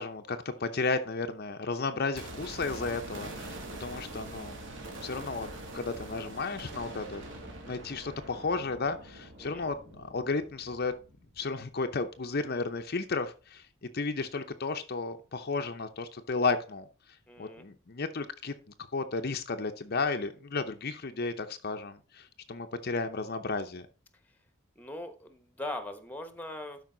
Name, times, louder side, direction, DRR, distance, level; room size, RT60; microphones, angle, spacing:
voice 1, 0.0-4.6 5.0-5.5 5.7-7.2 7.6-10.9 11.4-13.6 13.9-16.9 17.4-18.5 18.9-23.9, left 4 dB, 45° left, 7 dB, 0.7 m, -33 dB
sound 1, 2.1-12.2 12.4-12.5, right 1 dB, 60° right, 2.6 m, -44 dB
voice 2, 17.3-17.6 24.7-26.8, left 1 dB, 10° left, 9 dB, 1.1 m, -40 dB
12.0 x 5.2 x 3.9 m, 0.35 s
head